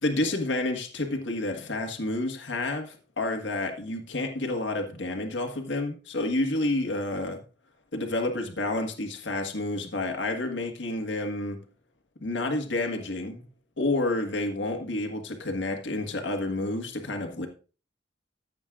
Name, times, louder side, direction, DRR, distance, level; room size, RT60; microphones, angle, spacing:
voice 1, 0.0-7.4 7.9-11.6 12.2-13.5 13.8-17.5, left 2 dB, 85° left, 5 dB, 1.6 m, -29 dB
14.5 x 7.7 x 2.5 m, 0.35 s
head